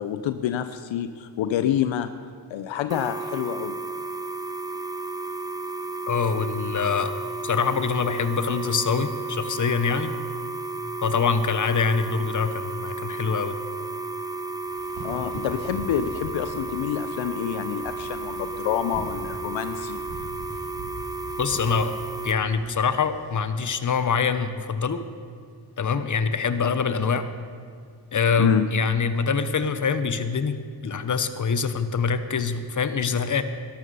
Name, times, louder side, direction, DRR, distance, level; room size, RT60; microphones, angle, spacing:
voice 1, 0.0-2.1 2.5-3.8 15.0-20.1 28.4-28.7, left 10 dB, 75° left, 11 dB, 0.6 m, -27 dB
sound 1, 2.9-22.3, right 3 dB, 10° right, 1.0 m, -33 dB
voice 2, 6.1-7.1 7.4-10.1 11.0-13.6 21.4-21.9 22.2-25.0 25.8-27.3 28.1-33.4, left 5 dB, 40° left, 11 dB, 1.0 m, -24 dB
sound 2, 14.7-23.4, right 1 dB, 90° right, 2.5 m, -42 dB
13.0 x 12.0 x 5.5 m, 2.2 s
cardioid pair, 60°, 46 cm